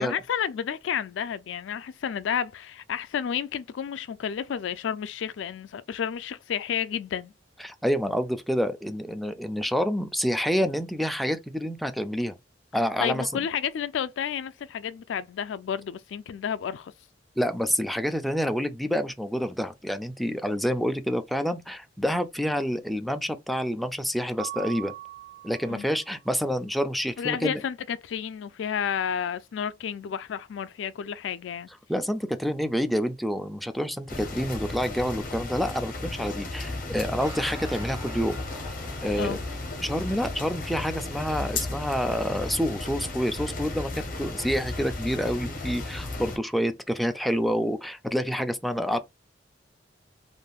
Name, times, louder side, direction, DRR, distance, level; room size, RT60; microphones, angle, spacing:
voice 1, 0.0-7.3 13.0-16.9 25.7-25.9 27.2-31.7 39.1-39.4, left 8 dB, 80° left, 0.3 m, -31 dB
voice 2, 7.6-12.3 12.7-13.4 17.4-24.9 25.4-27.6 31.9-38.4 39.0-39.4 39.8-49.0, equal, ahead, 0.3 m, -28 dB
Mallet percussion, 24.4-26.2, right 14 dB, 30° right, 0.7 m, -41 dB
sound 1, 34.1-46.4, left 2 dB, 50° left, 0.8 m, -34 dB
Guitar, 37.2-46.0, left 1 dB, 15° right, 1.1 m, -48 dB
3.4 x 2.6 x 2.3 m
head